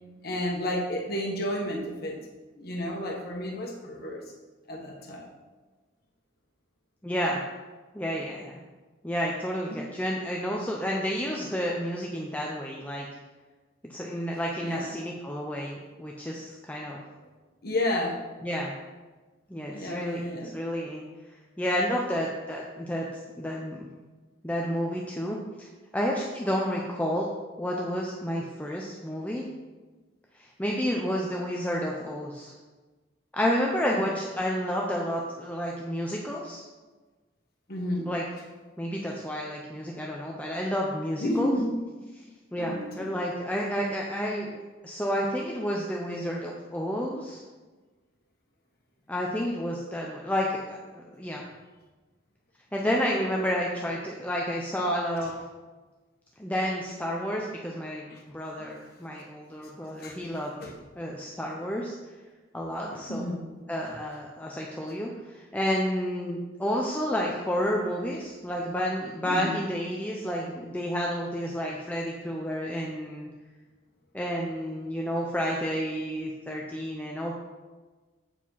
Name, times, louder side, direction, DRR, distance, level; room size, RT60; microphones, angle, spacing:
voice 1, 0.2-2.2 2.5-4.2 4.7-5.3 9.7-9.8 14.6-14.9 17.6-18.2 19.7-20.6 33.8-34.0 37.7-38.1 41.2-41.8 42.6-43.1 55.2-55.3 58.1-58.2 60.0-60.2 60.6-60.7 62.9-63.4 69.2-69.5, left 1 dB, 50° left, -1 dB, 1.3 m, -31 dB
voice 2, 7.0-7.4 7.9-8.6 9.0-13.1 13.8-17.0 18.4-18.7 19.5-20.2 20.5-21.0 21.6-23.1 23.4-23.9 24.4-25.7 25.9-27.3 27.6-29.4 30.3-32.5 33.3-36.6 38.1-38.2 38.8-41.5 42.1-42.2 42.5-44.6 44.8-47.4 49.1-51.4 52.7-55.4 56.4-60.5 61.0-61.9 62.5-63.3 63.7-73.3 74.1-77.3, equal, 5° left, -2 dB, 0.5 m, -30 dB
8.2 x 4.9 x 5.5 m, 1.3 s
head